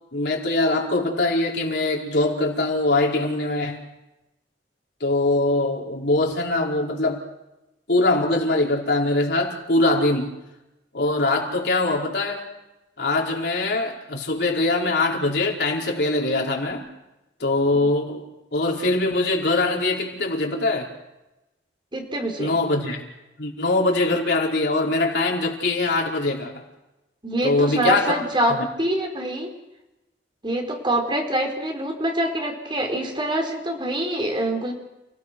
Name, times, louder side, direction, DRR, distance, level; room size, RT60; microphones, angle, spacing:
voice 1, 0.1-3.8 5.0-7.3 7.9-10.3 10.9-12.5 13.0-16.9 17.4-18.2 18.5-20.9 22.4-23.0 23.4-26.6 27.4-28.6, left 2 dB, 70° left, -1 dB, 4.9 m, -22 dB
voice 2, 21.9-22.5 27.2-29.5 30.4-34.7, right 1 dB, 30° right, 2 dB, 4.6 m, -25 dB
30.0 x 17.5 x 6.3 m, 0.97 s
head